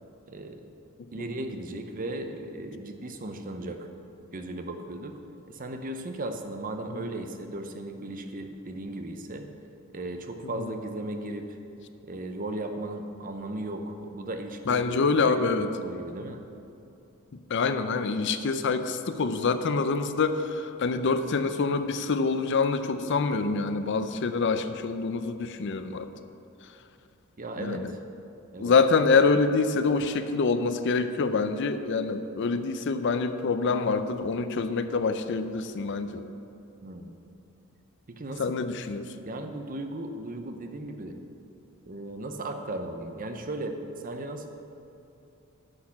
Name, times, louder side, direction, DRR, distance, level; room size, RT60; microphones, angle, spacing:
voice 1, 0.3-0.7 1.1-3.9 4.3-5.2 5.5-9.5 9.9-11.6 12.1-14.9 15.2-16.4 27.4-28.0 28.5-28.7 36.8-37.2 38.1-38.6 39.2-41.2 41.9-44.5, right 1 dB, 40° right, 6 dB, 0.7 m, -36 dB
voice 2, 14.7-15.7 17.5-26.1 27.6-27.9 28.6-36.2 38.4-39.1, left 4 dB, 55° left, 10 dB, 0.5 m, -26 dB
9.8 x 6.5 x 6.0 m, 2.8 s
head